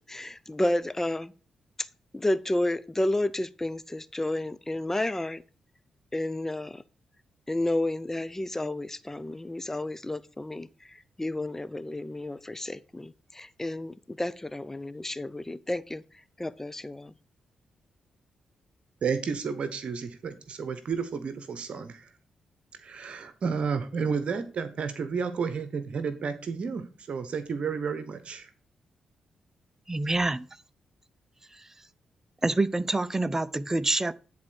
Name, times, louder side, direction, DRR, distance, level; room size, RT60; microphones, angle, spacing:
voice 1, 0.1-1.3 1.8-1.9 2.1-5.4 6.1-6.8 7.5-16.0 16.4-17.1, left 1 dB, 20° left, 0.7 m, -31 dB
voice 2, 19.0-22.1 22.8-28.5, right 5 dB, 60° right, 1.1 m, -31 dB
voice 3, 29.9-30.5 31.5-31.6 32.4-34.1, right 2 dB, 20° right, 0.7 m, -26 dB
10.5 x 4.3 x 6.5 m
supercardioid pair, 45°, 2 cm